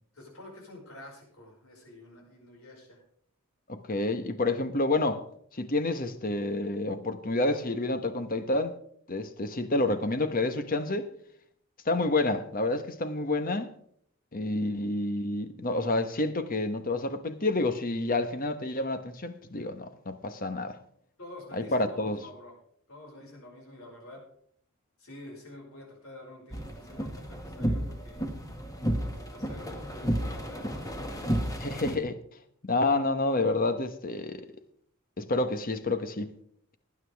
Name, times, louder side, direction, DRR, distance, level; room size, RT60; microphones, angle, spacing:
voice 1, 0.1-3.0 21.2-22.5 22.9-24.3 25.0-28.2 29.0-31.3, left 1 dB, 70° left, 5.6 m, -48 dB
voice 2, 3.7-5.2 5.5-8.7 9.1-11.1 11.9-13.7 14.3-20.8 21.6-22.2 31.6-32.2 32.6-34.5 35.2-36.3, left 2 dB, 40° left, 1.1 m, -29 dB
sound 1, 26.5-31.9, equal, 15° left, 1.8 m, -32 dB
19.0 x 9.6 x 3.5 m
head